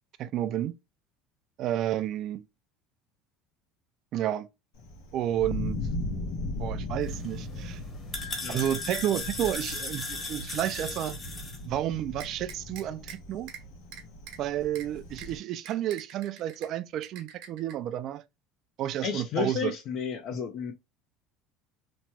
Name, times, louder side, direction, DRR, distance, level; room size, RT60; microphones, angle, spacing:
voice 1, 0.2-0.7 1.6-2.4 4.1-4.5 5.1-5.8 6.6-7.8 8.5-11.2 11.6-13.5 14.4-18.2 18.8-19.7, right 12 dB, 50° right, 0.3 m, -31 dB
Thunder, 4.8-15.4, left 2 dB, 90° left, 1.0 m, -38 dB
sound 1, 7.0-11.6, left 3 dB, 20° left, 0.9 m, -37 dB
sound 2, 12.2-13.2 13.5-13.6 13.9-14.4 14.8-14.9 15.2-15.3 15.7-16.7 17.0-17.7, right 8 dB, 70° right, 0.9 m, -44 dB
voice 2, 19.0-20.7, left 7 dB, 55° left, 0.5 m, -32 dB
3.0 x 2.2 x 2.8 m
supercardioid pair, 125°, 0 cm